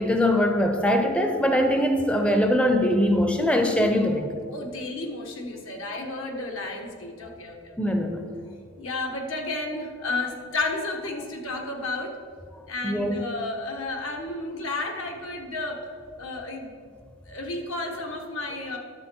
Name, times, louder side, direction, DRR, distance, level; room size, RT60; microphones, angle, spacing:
voice 1, 0.0-4.3 7.8-8.2 12.8-13.2, left 1 dB, 5° left, 5 dB, 0.5 m, -22 dB
voice 2, 4.5-7.8 8.8-12.1 12.7-15.9 16.2-16.8 17.3-18.8, left 2 dB, 75° left, 2 dB, 1.3 m, -32 dB
11.0 x 6.8 x 4.5 m, 2.2 s
head